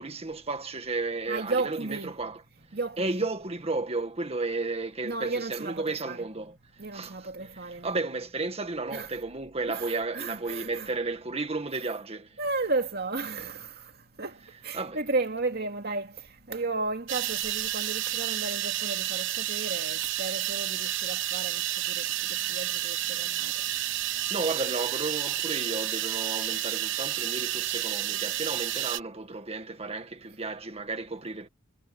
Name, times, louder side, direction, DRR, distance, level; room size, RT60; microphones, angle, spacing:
voice 1, 0.0-2.4 3.0-7.1 7.4-7.5 7.8-12.4 14.7-15.0 24.3-31.5, right 3 dB, 30° right, 1.8 m, -33 dB
voice 2, 1.3-2.1 2.7-3.2 5.0-6.3 6.8-8.0 8.9-9.1 9.7-10.9 12.4-13.7 14.2-14.4 14.6-16.1 16.5-21.6 21.9-22.0 22.3-23.5, right 3 dB, 55° right, 2.6 m, -33 dB
sound 1, 17.1-29.0, right 13 dB, 70° right, 1.1 m, -30 dB
head